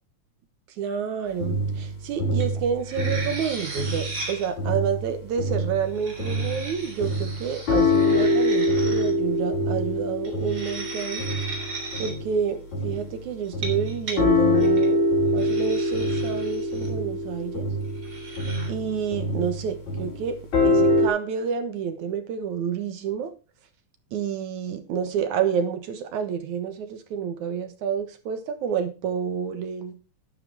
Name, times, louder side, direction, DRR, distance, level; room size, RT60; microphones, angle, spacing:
voice 1, 0.8-11.3 12.0-15.1 15.3-17.7 18.7-20.4 20.6-23.3 24.1-30.0, right 7 dB, 70° right, 2.6 m, -29 dB
sound 1, 1.4-4.3 4.6-13.2 13.5-21.1, left 1 dB, 65° left, 5.8 m, -24 dB
sound 2, 2.4-2.5 2.8-4.5 5.8-9.1 10.2-12.1 13.5-14.2 14.6-14.9 15.4-16.9 17.9-18.7, right 3 dB, 30° right, 4.0 m, -37 dB
12.0 x 11.0 x 3.5 m
omnidirectional pair, 3.6 m